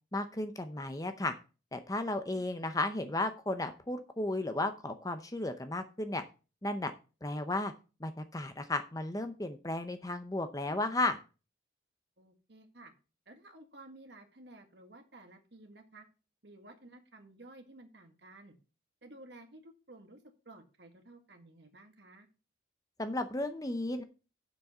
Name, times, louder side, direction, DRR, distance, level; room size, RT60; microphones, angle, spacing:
voice 1, 0.1-1.3 1.7-6.2 6.6-6.9 7.2-7.7 8.0-11.2 23.0-24.0, left 2 dB, 20° left, 9 dB, 0.7 m, -34 dB
voice 2, 12.2-12.9 13.3-16.1 16.4-18.6 19.0-22.3, right 2 dB, 65° right, 5 dB, 1.8 m, -54 dB
7.1 x 6.2 x 6.8 m, 0.33 s
head